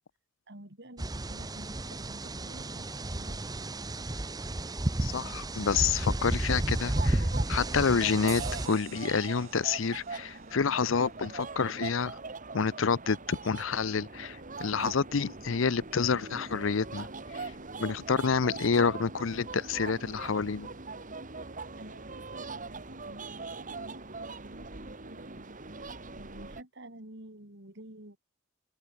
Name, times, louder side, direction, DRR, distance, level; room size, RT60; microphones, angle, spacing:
voice 1, 0.5-3.6 21.4-28.2, right 1 dB, 60° right, 5.5 m, -51 dB
sound 1, 1.0-8.7, right 1 dB, 20° right, 0.9 m, -32 dB
voice 2, 5.0-12.2 12.5-17.5 17.8-20.7, left 5 dB, 70° left, 0.6 m, -29 dB
sound 2, 6.9-26.6, right 3 dB, 40° right, 3.1 m, -42 dB
sound 3, 8.3-13.2, right 12 dB, 80° right, 3.6 m, -50 dB
head